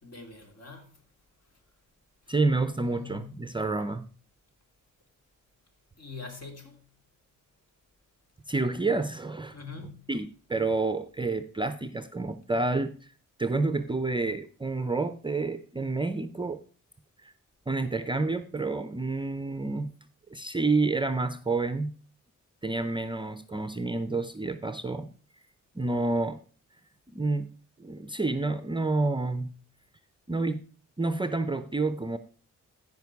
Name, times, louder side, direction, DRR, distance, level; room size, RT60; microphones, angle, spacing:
voice 1, 0.0-1.0 1.5-1.6 2.5-3.4 6.0-6.9 9.5-10.1, left 5 dB, 50° left, 2.7 m, -45 dB
voice 2, 2.3-4.1 8.5-9.6 10.1-12.9 13.4-16.6 17.2-17.3 17.7-19.9 20.3-21.9 22.6-25.1 25.7-26.4 27.1-27.5 27.8-29.5 30.3-30.6 31.0-32.2, right 3 dB, 15° right, 0.5 m, -29 dB
14.5 x 5.3 x 4.7 m
cardioid pair, 100°, 32 cm